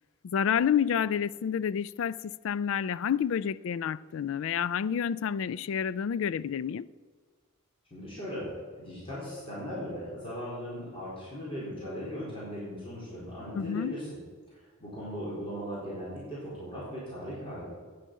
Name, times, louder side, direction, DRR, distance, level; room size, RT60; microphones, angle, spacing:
voice 1, 0.2-6.9 13.5-13.9, left 8 dB, 65° left, 0.3 m, -29 dB
voice 2, 7.9-8.5 8.8-14.2 14.5-17.7, equal, 25° left, 4.2 m, -38 dB
9.6 x 9.0 x 8.6 m
head